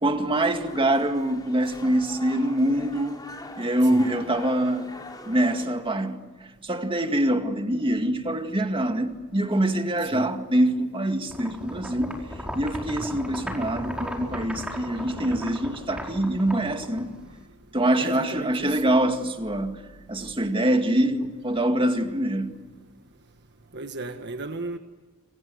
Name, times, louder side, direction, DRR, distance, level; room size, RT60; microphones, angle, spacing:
voice 1, 0.0-3.2 3.6-4.9 5.3-6.2 6.6-12.2 12.5-17.1 17.7-19.8 20.1-22.5, right 1 dB, 25° right, 2.1 m, -24 dB
sound 1, 0.5-5.7, left 2 dB, 20° left, 3.8 m, -43 dB
sound 2, 11.3-17.4, equal, 5° right, 5.0 m, -36 dB
voice 2, 18.0-18.8 23.7-24.8, right 3 dB, 50° right, 1.4 m, -35 dB
27.5 x 26.5 x 8.0 m
head